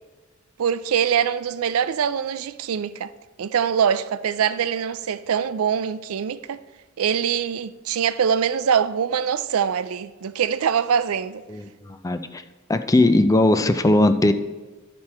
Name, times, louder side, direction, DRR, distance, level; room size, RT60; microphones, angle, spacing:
voice 1, 0.6-3.1 3.4-6.6 7.0-11.4, right 7 dB, 85° right, 0.4 m, -23 dB
voice 2, 11.5-12.4 12.7-14.3, left 2 dB, 15° left, 0.4 m, -19 dB
13.0 x 6.1 x 4.3 m
head